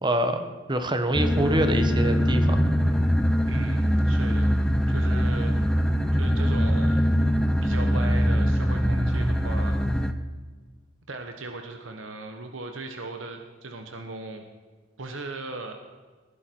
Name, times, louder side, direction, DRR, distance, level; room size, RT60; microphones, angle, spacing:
voice 1, 0.0-2.6, right 1 dB, 25° right, 8 dB, 1.2 m, -25 dB
sound 1, 1.1-10.1, equal, 5° left, 0.8 m, -22 dB
voice 2, 3.5-4.6 4.9-5.5 6.1-7.1 7.6-9.8 11.1-14.4 15.0-15.8, right 3 dB, 85° right, 5 dB, 1.2 m, -37 dB
20.0 x 11.0 x 4.6 m, 1.4 s
head